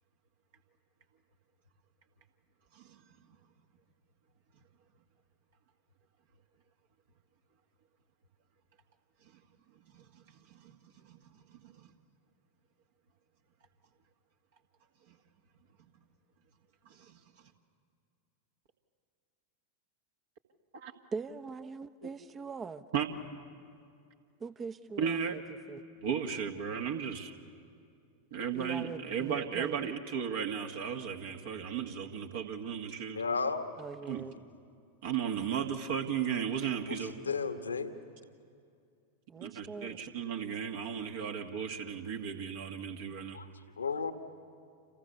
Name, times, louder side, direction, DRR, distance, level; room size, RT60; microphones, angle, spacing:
voice 1, 11.5-11.9 15.1-15.2 16.9-17.2 20.7-20.9 22.9-23.1 25.0-25.4 26.0-27.3 28.3-33.2 34.1-34.2 35.0-37.1 39.4-43.4, right 7 dB, 55° right, 3 dB, 1.8 m, -35 dB
voice 2, 21.1-22.8 24.4-25.4 25.7-25.8 28.5-29.9 33.8-34.3 39.3-40.0, right 5 dB, 20° right, 12 dB, 0.9 m, -42 dB
voice 3, 33.1-33.7 36.9-37.9 43.3-43.5 43.8-44.1, left 5 dB, 75° left, 8 dB, 1.5 m, -33 dB
29.5 x 28.0 x 6.9 m, 2.4 s
figure-of-eight pair, 90°, 0 cm